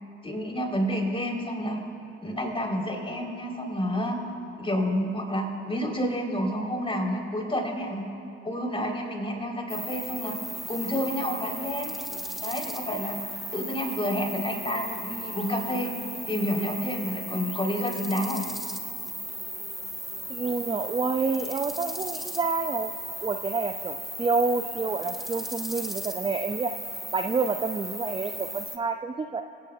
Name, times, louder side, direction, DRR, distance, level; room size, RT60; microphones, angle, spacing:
voice 1, 0.2-1.8 2.2-4.2 4.6-8.0 8.4-10.3 10.7-11.9 12.4-13.2 13.5-15.9 16.3-18.4, equal, 20° left, 0 dB, 4.2 m, -29 dB
sound 1, 9.7-28.8, equal, ahead, 1.3 m, -36 dB
voice 2, 20.3-22.9 23.2-26.7 27.1-29.4, right 4 dB, 15° right, 6 dB, 0.6 m, -28 dB
27.0 x 17.0 x 2.5 m, 2.7 s
hypercardioid pair, 55°, 30 cm